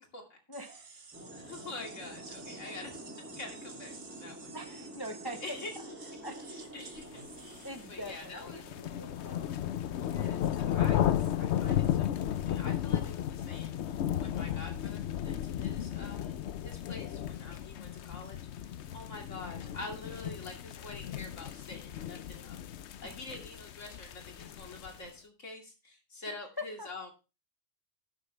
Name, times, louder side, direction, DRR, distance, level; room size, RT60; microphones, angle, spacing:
voice 1, 0.5-0.9 4.5-5.6 6.2-6.5 7.6-9.6 23.0-23.2 26.3-26.9, left 1 dB, 20° left, 6 dB, 0.9 m, -43 dB
sound 1, 0.5-7.9, right 4 dB, 70° right, 1.7 m, -52 dB
sound 2, 1.1-10.6, equal, 10° right, 3.0 m, -49 dB
voice 2, 1.3-3.0 3.4-4.5 5.2-5.7 6.5-7.3 7.9-8.6 10.0-13.8 14.2-18.4 18.9-22.6 23.0-27.1, left 2 dB, 85° left, 2 dB, 2.9 m, -46 dB
sound 3, 7.6-25.1, left 11 dB, 70° left, 0.9 m, -34 dB
12.0 x 9.0 x 3.3 m, 0.29 s
omnidirectional pair, 1.2 m